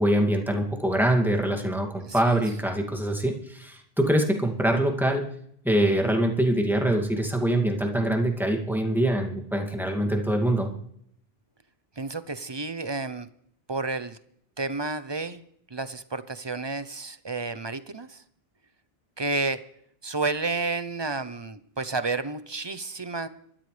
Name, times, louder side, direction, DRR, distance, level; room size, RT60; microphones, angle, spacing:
voice 1, 0.0-5.2 5.6-10.7, right 1 dB, ahead, 2 dB, 2.3 m, -24 dB
voice 2, 2.0-2.4 12.0-13.3 13.7-14.2 14.6-15.4 15.7-18.2 19.2-19.6 20.0-23.3, right 3 dB, 30° right, 13 dB, 0.7 m, -31 dB
24.5 x 13.0 x 3.3 m, 0.68 s
omnidirectional pair, 1.1 m